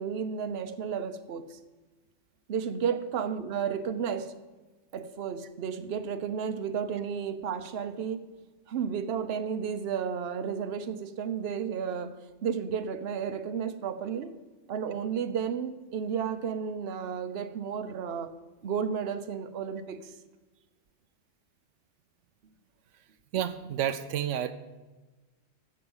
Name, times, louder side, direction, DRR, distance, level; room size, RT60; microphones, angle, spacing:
voice 1, 0.0-1.6 2.5-4.3 4.9-8.2 8.7-12.1 12.4-14.3 14.7-18.3 18.6-20.1, right 7 dB, 60° right, 10 dB, 1.0 m, -32 dB
voice 2, 23.3-24.5, right 10 dB, 90° right, 11 dB, 1.0 m, -30 dB
8.9 x 6.6 x 7.9 m, 1.2 s
omnidirectional pair, 1.2 m